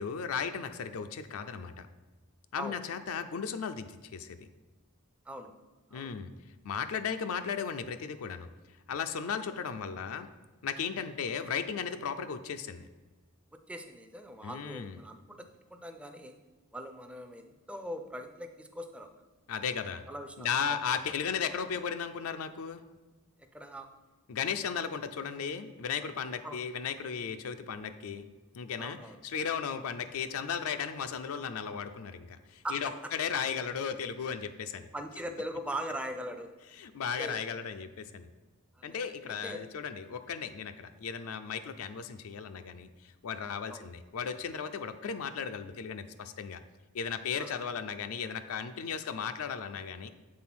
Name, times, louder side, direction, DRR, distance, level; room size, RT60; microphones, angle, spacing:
voice 1, 0.0-1.9 2.5-4.5 5.9-6.3 6.6-8.5 8.9-10.3 10.6-12.9 14.4-15.0 19.5-20.0 20.4-22.8 24.3-28.2 28.5-29.0 29.2-34.9 36.7-38.3 38.8-46.6 46.9-50.1, left 6 dB, 70° left, 8 dB, 0.4 m, -35 dB
voice 2, 13.5-16.3 16.7-19.1 20.1-20.8 23.5-23.9 26.4-26.6 28.8-29.2 32.6-32.8 34.9-36.5 37.2-37.4 38.8-39.0 39.4-39.7 43.7-43.8 47.4-47.5, right 1 dB, 5° right, 6 dB, 0.4 m, -41 dB
7.5 x 3.8 x 6.0 m, 1.3 s
head